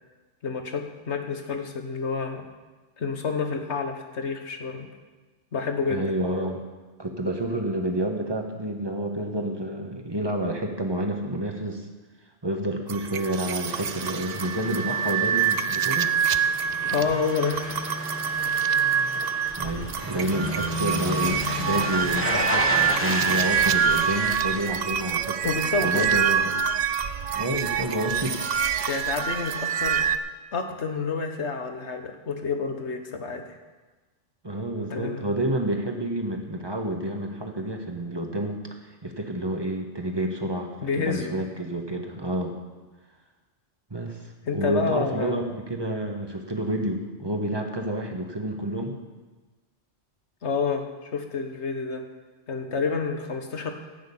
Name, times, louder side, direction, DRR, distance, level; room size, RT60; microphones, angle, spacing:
voice 1, 0.4-2.4 3.0-4.9 5.5-6.0 16.8-18.0 25.4-26.2 28.8-30.0 30.5-33.4 34.9-35.3 40.8-41.3 44.4-45.4 50.4-52.0 52.5-53.7, left 5 dB, 65° left, 5 dB, 1.6 m, -29 dB
voice 2, 5.9-6.6 7.0-11.9 12.4-16.1 19.2-26.6 27.3-28.4 34.4-42.5 43.9-49.0, right 1 dB, 20° right, 3 dB, 1.4 m, -29 dB
sound 1, 12.9-30.2, right 8 dB, 50° right, 0.5 m, -26 dB
sound 2, 13.7-25.6 25.9-26.0, left 1 dB, 10° left, 1.1 m, -33 dB
15.0 x 6.4 x 8.6 m, 1.3 s
omnidirectional pair, 1.3 m